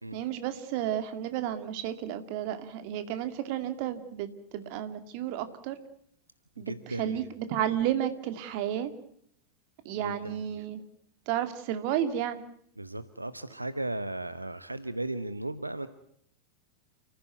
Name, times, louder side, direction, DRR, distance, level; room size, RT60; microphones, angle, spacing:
voice 1, 0.1-5.8 6.6-7.2 7.5-8.9 9.8-10.8 11.3-12.4, right 10 dB, 45° right, 10 dB, 2.4 m, -32 dB
voice 2, 6.6-7.2 9.9-10.4 12.8-15.9, right 2 dB, 85° right, 13 dB, 1.0 m, -36 dB
29.0 x 15.5 x 9.2 m, 0.69 s
figure-of-eight pair, 90°, 0 cm